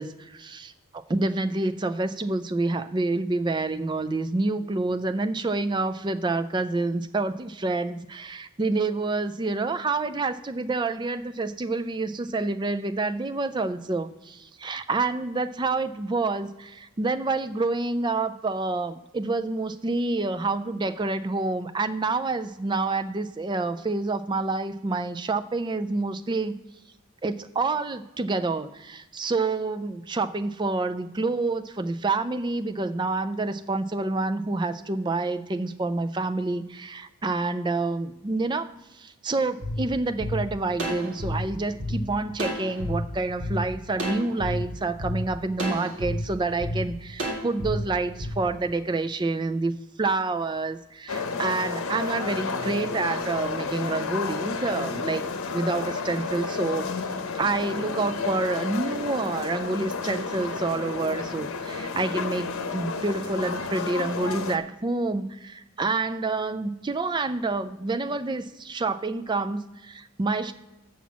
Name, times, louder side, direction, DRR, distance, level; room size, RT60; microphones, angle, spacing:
voice 1, 0.0-26.6 27.2-49.7 50.0-56.9 57.3-70.5, right 3 dB, 20° right, 10 dB, 0.4 m, -28 dB
sound 1, 39.6-39.7 40.2-40.3 40.8-41.9 42.4-42.9 43.4-43.5 44.0-44.5 45.0-45.1 45.6-46.1 46.6-46.7 47.2-47.7 48.2-48.3, equal, 60° right, 1.9 m, -30 dB
sound 2, 51.1-64.6, left 4 dB, 85° left, 0.8 m, -31 dB
7.1 x 5.9 x 7.3 m, 1.0 s
head